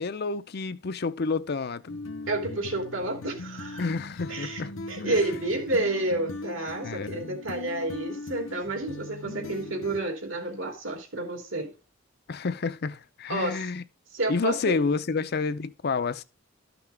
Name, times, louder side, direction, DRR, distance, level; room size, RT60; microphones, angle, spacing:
voice 1, 0.0-2.0 3.8-5.2 6.8-7.4 12.3-13.8 14.3-16.2, left 4 dB, 50° left, 0.6 m, -30 dB
sound 1, 1.9-10.0, left 2 dB, 80° left, 0.9 m, -40 dB
voice 2, 2.3-3.8 4.3-11.7 13.3-13.6 14.1-14.8, right 2 dB, 75° right, 2.8 m, -30 dB
12.5 x 6.0 x 3.3 m
head